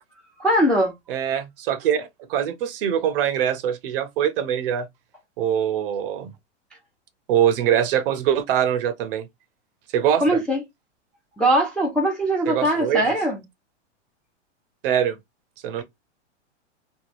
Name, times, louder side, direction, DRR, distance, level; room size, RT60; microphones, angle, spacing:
voice 1, 0.4-0.9 10.2-10.6 11.4-13.4, right 1 dB, 5° left, 0.4 m, -21 dB
voice 2, 1.1-4.9 5.4-6.3 7.3-9.3 9.9-10.2 12.5-13.0 14.8-15.2 15.6-15.8, right 9 dB, 50° right, 0.6 m, -23 dB
3.4 x 2.2 x 2.5 m
hypercardioid pair, 130°, 36 cm